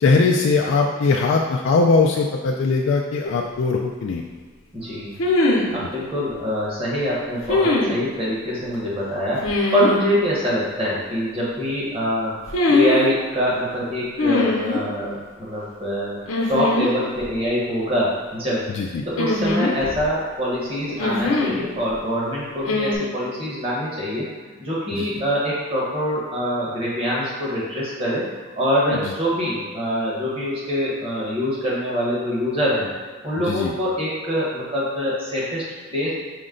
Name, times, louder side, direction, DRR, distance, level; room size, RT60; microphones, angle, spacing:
voice 1, 0.0-4.2 18.7-19.0 24.9-25.1 33.4-33.7, left 4 dB, 65° left, 0 dB, 0.3 m, -20 dB
sound 1, 3.2-3.3 5.2-5.8 7.5-8.0 9.4-10.0 12.5-13.0 14.2-14.8 16.3-16.9 17.2-17.3 19.2-20.1 21.0-21.6 22.6-23.0, left 2 dB, 85° left, 0.7 m, -21 dB
voice 2, 4.7-5.1 5.7-12.3 12.7-16.2 16.5-18.7 19.1-24.3 24.6-28.3 28.6-32.9 33.2-35.6 35.9-36.1, equal, 30° right, -7 dB, 1.2 m, -24 dB
5.1 x 2.2 x 3.7 m, 1.5 s
head